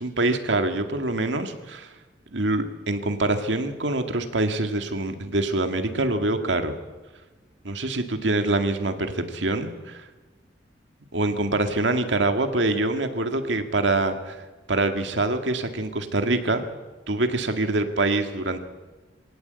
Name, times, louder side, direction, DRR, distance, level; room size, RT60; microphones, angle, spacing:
voice 1, 0.0-1.9 2.3-6.7 7.6-10.0 11.1-14.4 14.7-16.6 17.1-18.6, right 2 dB, 75° right, 7 dB, 2.1 m, -25 dB
23.5 x 17.5 x 8.2 m, 1.2 s
head